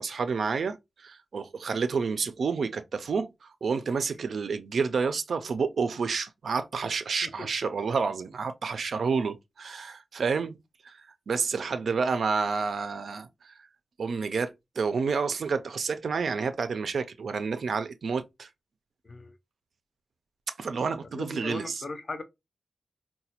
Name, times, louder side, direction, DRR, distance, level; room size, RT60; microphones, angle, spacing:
voice 1, 0.0-10.6 10.8-11.0 11.3-13.5 14.0-18.5 20.6-21.8, right 5 dB, 70° right, 0.3 m, -29 dB
voice 2, 19.0-19.4 21.1-22.2, left 3 dB, 35° left, 0.5 m, -38 dB
4.0 x 2.1 x 2.8 m
wide cardioid pair, 180°, 0 cm